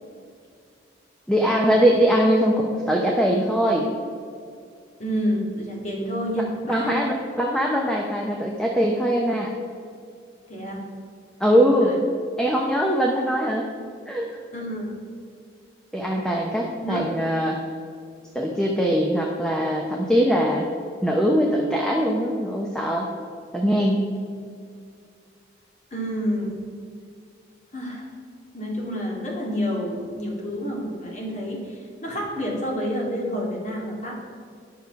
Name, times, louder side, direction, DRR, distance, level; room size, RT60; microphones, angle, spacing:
voice 1, 1.3-3.9 6.4-9.5 11.4-11.9 12.4-13.7 14.1-14.3 15.9-17.6 18.3-20.7 21.0-23.1 23.5-24.1, equal, 5° left, -1 dB, 0.8 m, -22 dB
voice 2, 5.0-6.9 10.5-10.8 11.8-12.0 14.5-14.9 16.8-17.1 25.9-26.6 27.7-28.1 28.5-34.1, equal, 40° left, -2 dB, 2.2 m, -29 dB
10.5 x 6.3 x 5.8 m, 2.3 s
head